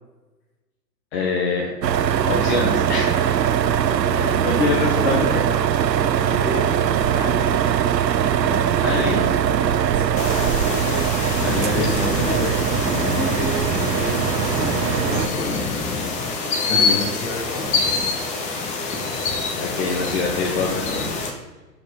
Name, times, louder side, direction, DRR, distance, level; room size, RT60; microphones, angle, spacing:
voice 1, 1.1-1.7 2.3-3.2 4.1-5.4 8.4-9.3 11.4-12.7 16.7-17.1 19.5-21.1, left 4 dB, 40° left, -3 dB, 1.6 m, -25 dB
sound 1, 1.8-15.3, right 9 dB, 80° right, 0.7 m, -21 dB
voice 2, 4.8-5.2 6.2-7.6 9.9-11.1 13.1-13.7 13.9-14.4 14.9-15.5 16.7-17.9, left 1 dB, 60° left, -2 dB, 3.4 m, -32 dB
sound 2, 10.2-21.3, left 4 dB, 15° left, 0.8 m, -25 dB
10.5 x 5.1 x 5.0 m, 1.2 s
hypercardioid pair, 125°, 50 cm